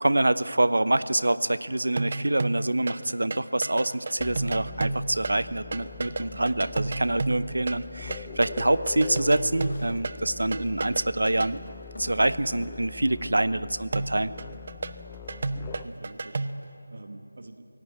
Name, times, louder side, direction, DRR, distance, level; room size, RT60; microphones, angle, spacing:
voice 1, 0.0-11.6 12.0-14.3, right 1 dB, 85° right, 15 dB, 0.8 m, -26 dB
sound 1, 1.9-3.1 3.3-11.5 13.9-16.7, right 3 dB, 40° right, 0.8 m, -32 dB
sound 2, 4.2-15.9, left 6 dB, 15° left, 0.6 m, -43 dB
sound 3, 8.7-10.1 10.3-12.8, left 1 dB, 65° left, 4.8 m, -48 dB
voice 2, 15.2-17.7, right 2 dB, 55° right, 7 dB, 1.4 m, -46 dB
24.5 x 17.5 x 8.7 m, 2.8 s
figure-of-eight pair, 170°, 0 cm